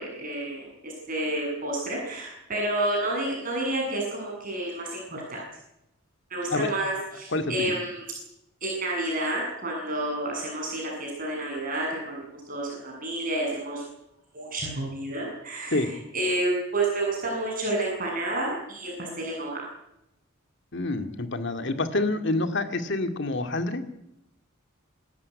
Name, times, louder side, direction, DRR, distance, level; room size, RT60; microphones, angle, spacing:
voice 1, 0.0-5.4 6.3-8.0 8.6-13.8 14.3-19.6, right 1 dB, 40° right, -1 dB, 7.6 m, -30 dB
voice 2, 7.3-7.7 15.7-15.9 20.7-23.8, left 2 dB, 60° left, 7 dB, 2.1 m, -27 dB
26.0 x 13.5 x 9.7 m, 0.84 s
head